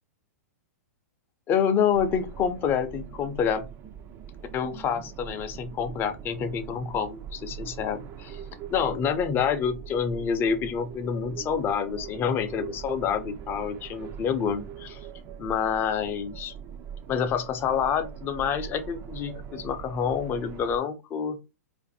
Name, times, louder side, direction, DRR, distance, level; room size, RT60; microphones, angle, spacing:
voice 1, 1.5-3.7 4.5-8.4 8.7-15.0 15.4-16.5 17.1-21.4, left 7 dB, 25° left, 8 dB, 0.5 m, -27 dB
sound 1, 1.9-20.8, right 8 dB, 30° right, 0.4 m, -42 dB
2.5 x 2.5 x 4.0 m, 0.27 s
hypercardioid pair, 130°, 8 cm